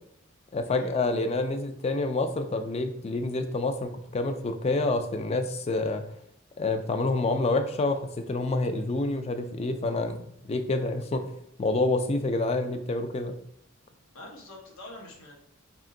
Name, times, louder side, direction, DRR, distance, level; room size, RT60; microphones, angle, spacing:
voice 1, 0.5-6.0 6.6-10.2 10.5-11.3 11.6-13.3, left 2 dB, 30° left, 7 dB, 0.3 m, -28 dB
voice 2, 14.1-15.3, left 1 dB, 90° left, -2 dB, 1.1 m, -45 dB
3.6 x 2.5 x 3.7 m, 0.74 s
head